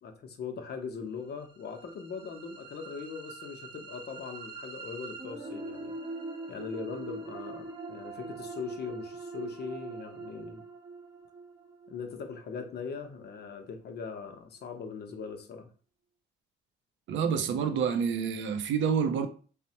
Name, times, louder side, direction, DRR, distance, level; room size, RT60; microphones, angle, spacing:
voice 1, 0.0-5.9 6.5-10.6 11.9-15.7, left 5 dB, 55° left, 0.6 m, -40 dB
sound 1, 1.3-13.4, right 3 dB, 25° right, 0.7 m, -43 dB
voice 2, 17.1-19.3, right 7 dB, 70° right, 0.5 m, -28 dB
3.1 x 2.0 x 2.8 m
cardioid pair, 90°, 20 cm